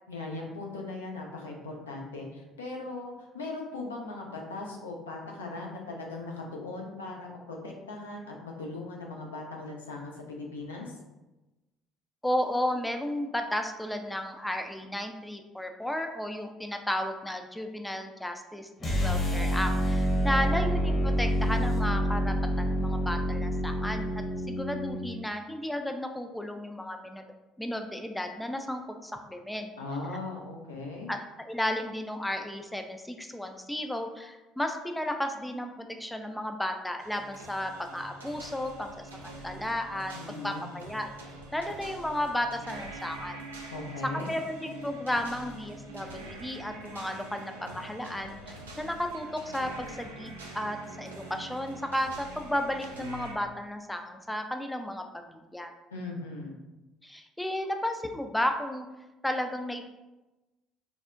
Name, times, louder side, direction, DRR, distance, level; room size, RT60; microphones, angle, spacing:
voice 1, 0.1-11.0 29.8-31.1 40.1-40.6 43.7-44.3 55.9-56.6, left 2 dB, 85° left, 0 dB, 0.4 m, -39 dB
voice 2, 12.2-24.1 24.5-27.3 27.6-29.7 31.1-40.1 40.4-41.1 41.5-43.4 44.0-55.7 57.0-58.9 59.2-59.9, left 1 dB, 5° left, 5 dB, 0.3 m, -33 dB
sound 1, 18.8-25.1, equal, 35° left, 0.8 m, -27 dB
sound 2, 37.0-53.4, right 2 dB, 90° right, 0.3 m, -45 dB
3.4 x 2.0 x 2.4 m, 1.1 s
hypercardioid pair, 55°, 0 cm